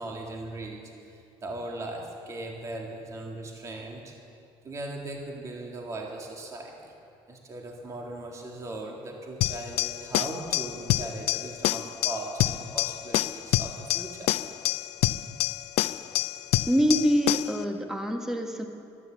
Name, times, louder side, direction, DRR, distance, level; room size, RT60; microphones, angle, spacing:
voice 1, 0.0-4.1 4.6-6.9 7.3-14.4, right 2 dB, 30° right, 0 dB, 1.9 m, -38 dB
sound 1, 9.4-17.6, left 16 dB, 85° left, 0.5 m, -27 dB
voice 2, 16.6-18.6, equal, 5° right, 4 dB, 1.4 m, -25 dB
15.5 x 12.5 x 7.2 m, 2.5 s
cardioid pair, 140°, 11 cm